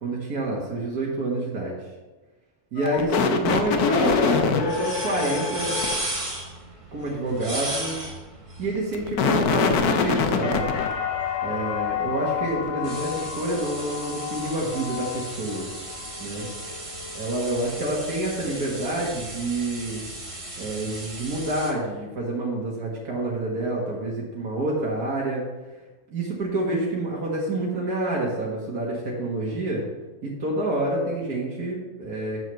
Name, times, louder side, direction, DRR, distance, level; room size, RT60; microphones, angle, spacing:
voice 1, 0.0-1.7 2.7-5.8 6.9-8.0 8.6-10.7 11.4-15.7 16.2-16.5 17.1-20.0 20.6-25.4 26.1-29.8 30.2-32.4, right 1 dB, 90° right, -4 dB, 2.1 m, -28 dB
sound 1, 2.8-5.9 8.8-10.9, left 5 dB, 85° left, 1.3 m, -23 dB
sound 2, 3.7-21.7, right 2 dB, 25° right, 1.4 m, -37 dB
sound 3, 10.4-18.3 18.7-19.4, left 9 dB, 60° left, 0.3 m, -33 dB
7.8 x 6.3 x 6.8 m, 1.2 s
omnidirectional pair, 1.6 m